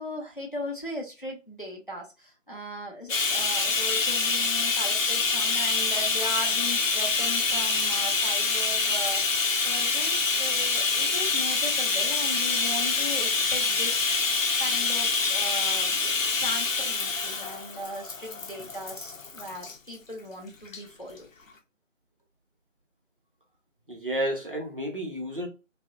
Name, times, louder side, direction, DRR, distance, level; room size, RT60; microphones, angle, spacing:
voice 1, 0.0-14.1 14.6-16.0 16.4-21.3, equal, 45° left, 0.5 m, -38 dB
Bathtub (filling or washing), 3.1-19.7 20.7-20.8 21.2-21.3, left 4 dB, 90° left, 0.7 m, -26 dB
voice 2, 23.9-25.5, right 1 dB, 45° right, 0.6 m, -31 dB
2.6 x 2.0 x 2.3 m
figure-of-eight pair, 170°, 38 cm